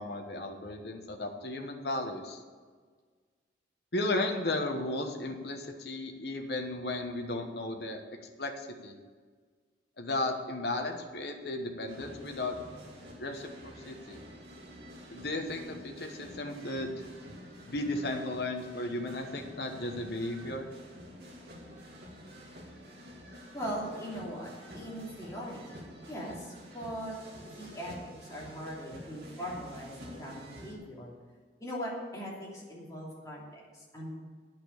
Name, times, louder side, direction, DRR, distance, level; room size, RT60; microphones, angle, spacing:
voice 1, 0.0-2.4 3.9-8.0 8.4-8.9 10.0-12.6 13.2-14.2 15.1-16.9 17.6-20.7, left 2 dB, 60° left, 3 dB, 1.2 m, -35 dB
sound 1, 11.9-30.7, equal, 60° right, 2.3 m, -48 dB
voice 2, 23.5-25.8 26.1-27.1 27.4-31.1 31.6-34.2, equal, 20° left, -5 dB, 2.9 m, -40 dB
8.9 x 6.8 x 8.4 m, 1.5 s
head